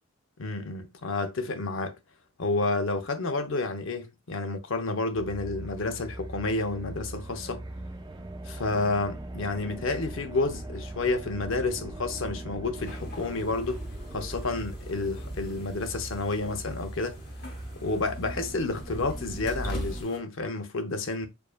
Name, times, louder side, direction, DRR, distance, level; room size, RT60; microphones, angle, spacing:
voice 1, 0.4-2.0 2.4-7.6 8.4-13.8 14.1-17.2 17.8-21.3, left 3 dB, 65° left, 0.7 m, -30 dB
sound 1, 5.1-20.0, right 1 dB, 20° right, 0.4 m, -39 dB
sound 2, 12.7-20.2, left 2 dB, 50° left, 1.1 m, -46 dB
4.6 x 2.7 x 2.4 m
head